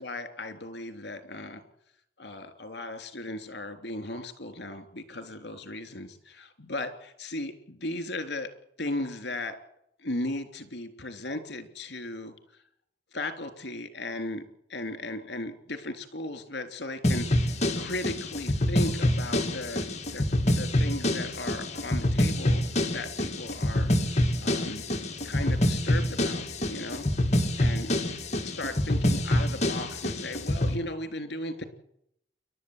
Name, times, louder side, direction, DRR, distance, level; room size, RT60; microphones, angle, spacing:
voice 1, 0.0-1.6 2.2-8.5 8.8-9.6 10.0-12.6 13.1-14.4 14.7-19.8 20.1-24.8 25.2-27.1 27.6-27.9 28.4-31.6, left 2 dB, 70° left, 8 dB, 3.3 m, -36 dB
sound 1, 17.0-30.7, left 1 dB, 40° left, 2.4 m, -26 dB
29.0 x 12.0 x 8.0 m, 0.73 s
head